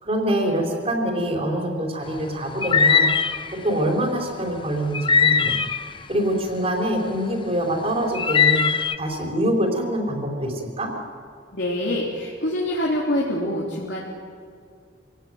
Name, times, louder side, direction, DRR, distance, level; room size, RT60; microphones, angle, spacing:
voice 1, 0.0-3.1 3.6-5.6 6.1-10.9, right 1 dB, 35° right, 1 dB, 4.3 m, -25 dB
sound 1, 2.6-3.5 4.9-6.0 8.1-9.0, left 6 dB, 30° left, 0.7 m, -20 dB
voice 2, 11.5-14.0, left 1 dB, 80° left, -4 dB, 3.7 m, -25 dB
26.0 x 17.5 x 9.5 m, 2.2 s
head